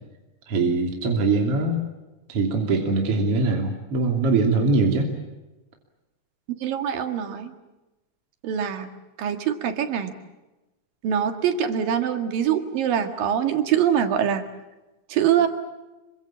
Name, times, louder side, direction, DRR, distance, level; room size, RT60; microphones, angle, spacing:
voice 1, 0.5-1.9 2.3-5.1, right 3 dB, 45° right, 2 dB, 3.6 m, -22 dB
voice 2, 6.5-7.5 8.4-8.9 9.2-10.2 11.0-14.5 15.1-15.5, right 9 dB, 85° right, 7 dB, 3.6 m, -24 dB
27.0 x 24.5 x 7.4 m, 1.1 s
omnidirectional pair, 3.9 m